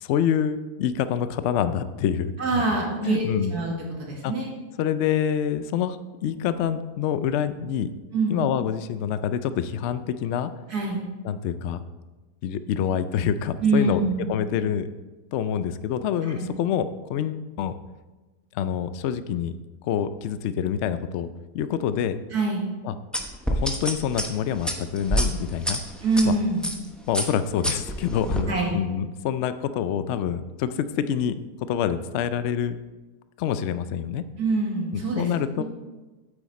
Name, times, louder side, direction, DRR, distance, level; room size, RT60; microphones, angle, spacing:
voice 1, 0.0-3.5 4.2-4.3 4.8-6.0 6.2-7.9 8.3-10.5 11.2-11.8 12.4-14.0 14.3-14.9 15.3-17.7 18.5-19.5 19.8-21.3 21.5-22.2 22.8-23.0 23.5-25.8 26.2-26.3 27.1-31.4 31.7-32.8 33.4-34.2 34.9-35.6, left 9 dB, 90° left, 12 dB, 0.6 m, -26 dB
voice 2, 2.4-4.5 8.1-8.4 10.7-11.0 13.6-14.3 16.4-16.5 22.3-22.7 26.0-26.7 28.5-28.8 34.4-35.3 35.6-35.7, right 3 dB, 70° right, -2 dB, 2.4 m, -24 dB
sound 1, 23.1-26.2 26.6-26.9 27.1-28.4, equal, ahead, 0.5 m, -27 dB
8.5 x 8.5 x 4.1 m, 1.2 s
omnidirectional pair, 1.7 m